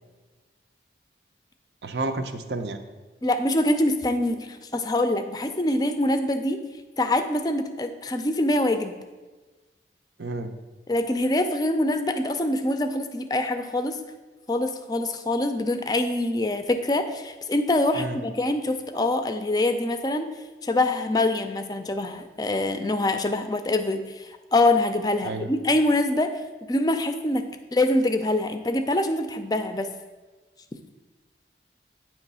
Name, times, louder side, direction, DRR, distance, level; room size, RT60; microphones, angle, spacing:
voice 1, 1.8-2.8 10.2-10.5 17.9-18.2 25.2-25.5, right 2 dB, 75° right, 7 dB, 0.5 m, -30 dB
voice 2, 3.2-6.6 7.0-9.0 10.9-14.0 14.5-20.3 20.6-26.3 26.7-29.9, left 1 dB, 20° left, 8 dB, 0.4 m, -24 dB
9.0 x 3.0 x 5.4 m, 1.3 s
head